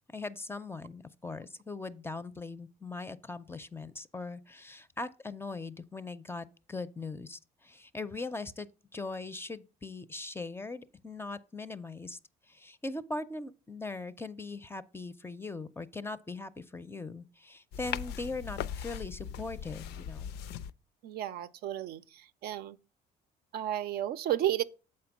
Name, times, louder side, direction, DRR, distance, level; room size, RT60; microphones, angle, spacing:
voice 1, 0.1-12.2 12.5-20.3, left 3 dB, 15° left, 0.5 m, -40 dB
sound 1, 17.7-20.7, left 9 dB, 80° left, 0.4 m, -39 dB
voice 2, 21.0-22.8 23.5-24.6, right 12 dB, 65° right, 0.5 m, -33 dB
7.4 x 4.3 x 5.9 m
cardioid pair, 110°, 17 cm